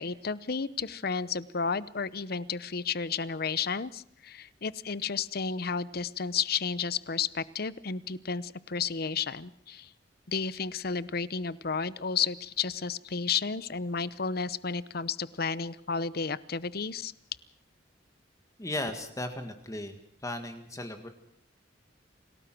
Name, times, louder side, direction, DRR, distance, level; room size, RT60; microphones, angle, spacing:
voice 1, 0.0-9.9 10.3-17.1, left 5 dB, 55° left, 17 dB, 0.9 m, -32 dB
voice 2, 18.6-20.0 20.2-21.1, left 1 dB, 20° left, 7 dB, 1.8 m, -36 dB
27.5 x 18.0 x 6.1 m, 0.65 s
head